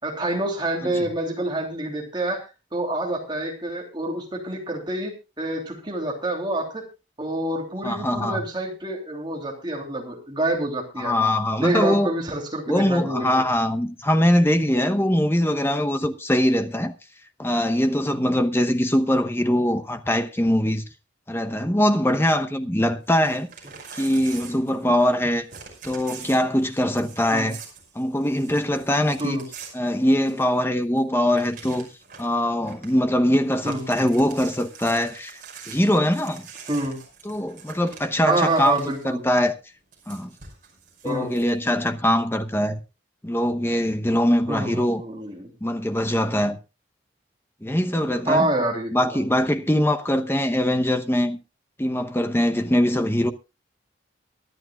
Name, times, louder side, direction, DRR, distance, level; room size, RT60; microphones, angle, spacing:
voice 1, 0.0-2.4 2.7-5.1 5.4-6.8 7.2-11.2 11.6-13.4 27.3-27.5 29.2-29.4 33.6-33.8 36.7-37.0 38.3-39.2 41.0-41.3 44.5-45.5 48.3-49.2, right 1 dB, 25° right, 3.1 m, -27 dB
voice 2, 7.8-8.4 11.0-12.1 12.7-16.9 17.4-20.8 21.3-23.5 23.9-25.5 25.8-27.6 27.9-29.4 29.7-31.9 32.2-35.4 35.7-36.4 37.2-38.8 39.0-39.5 40.1-40.3 41.0-42.8 43.2-45.0 45.6-46.6 47.6-48.5 48.9-51.4 51.8-53.3, left 1 dB, 10° left, 0.8 m, -22 dB
Crumpling crinkling / Tearing, 23.0-25.2 25.5-30.6 31.0-31.1 31.3-32.3 32.6-33.0 33.4-39.1 39.9-41.5, right 6 dB, 45° right, 5.5 m, -44 dB
23.5 x 11.0 x 2.4 m
head